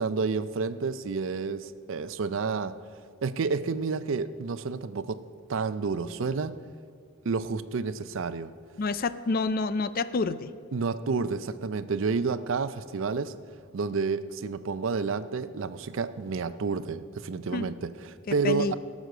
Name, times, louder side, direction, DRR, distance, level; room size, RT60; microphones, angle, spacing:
voice 1, 0.0-2.7 3.2-5.2 5.5-6.6 7.2-8.5 10.7-13.3 13.7-18.7, right 4 dB, 65° right, 14 dB, 0.5 m, -30 dB
voice 2, 8.8-10.5 17.5-17.7 18.3-18.7, left 3 dB, 45° left, 14 dB, 0.4 m, -28 dB
18.0 x 6.3 x 6.6 m, 2.1 s
head